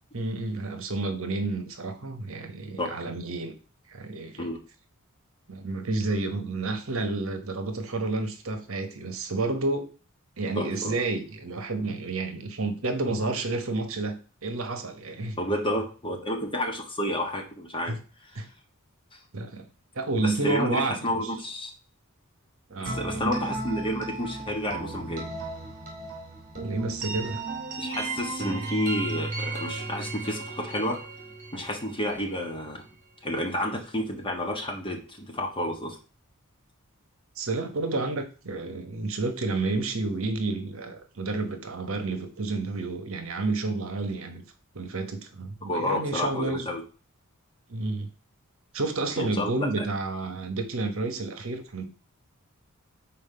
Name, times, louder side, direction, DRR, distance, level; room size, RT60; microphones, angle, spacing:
voice 1, 0.1-3.5 3.9-4.5 5.5-9.9 10.4-15.4 17.9-18.0 18.3-18.5 19.3-19.7 19.9-21.0 21.2-21.3 22.7-23.3 26.6-27.4 37.4-44.4 44.7-46.7 47.7-48.1 48.7-51.8, right 3 dB, 65° right, 1.1 m, -30 dB
voice 2, 10.5-10.9 15.4-17.9 20.2-21.7 22.8-25.3 27.8-31.0 31.5-32.8 33.2-36.0 45.6-46.8 49.2-49.9, left 1 dB, 25° left, 1.4 m, -30 dB
sound 1, 22.9-32.6, right 3 dB, 35° right, 2.7 m, -35 dB
5.8 x 4.4 x 5.6 m
head